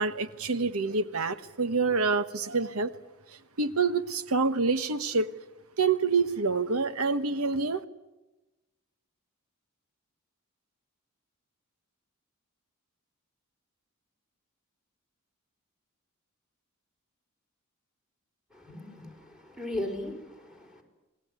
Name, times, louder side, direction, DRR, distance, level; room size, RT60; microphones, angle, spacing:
voice 1, 0.0-3.0 3.6-5.3 5.8-7.8, right 4 dB, 80° right, 12 dB, 1.2 m, -27 dB
voice 2, 18.5-20.8, left 1 dB, 5° right, 0 dB, 5.3 m, -37 dB
28.5 x 20.5 x 9.5 m, 1.0 s
head